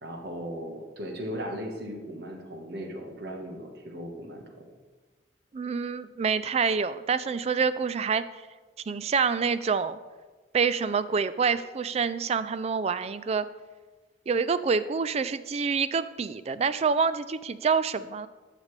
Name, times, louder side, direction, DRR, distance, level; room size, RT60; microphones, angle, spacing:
voice 1, 0.0-4.7, equal, 60° right, 3 dB, 1.3 m, -37 dB
voice 2, 5.5-8.2 8.9-10.0 10.5-13.5 14.3-18.3, right 5 dB, 35° right, 14 dB, 0.3 m, -27 dB
12.5 x 6.6 x 3.2 m, 1.3 s
head